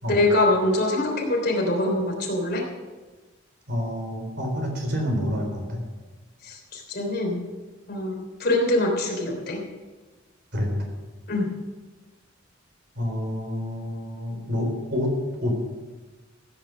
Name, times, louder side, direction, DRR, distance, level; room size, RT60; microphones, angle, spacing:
voice 1, 0.1-2.6 6.5-7.4 7.9-9.6 11.3-11.5, left 2 dB, 50° left, 0 dB, 3.4 m, -24 dB
voice 2, 3.7-5.8 10.5-10.9 13.0-15.6, left 1 dB, 55° right, 2 dB, 3.9 m, -28 dB
15.5 x 8.8 x 6.5 m, 1.2 s
head